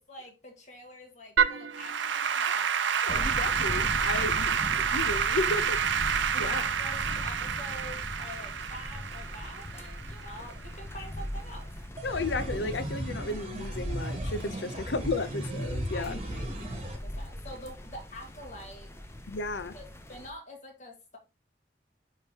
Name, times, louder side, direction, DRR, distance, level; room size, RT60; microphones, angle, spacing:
voice 1, 0.0-3.3 4.2-4.4 4.9-5.4 6.3-11.7 14.5-15.0 15.9-18.9 19.7-21.2, left 1 dB, 40° left, 1.9 m, -46 dB
Applause / Keyboard (musical), 1.4-10.7, right 7 dB, 85° right, 0.7 m, -29 dB
voice 2, 3.0-5.8 6.4-6.7 12.0-16.2 19.3-19.7, left 3 dB, 75° left, 0.7 m, -33 dB
sound 1, 3.1-20.3, left 1 dB, 15° left, 0.6 m, -40 dB
sound 2, 12.0-17.0, right 1 dB, 30° right, 1.3 m, -35 dB
9.9 x 3.7 x 2.9 m
head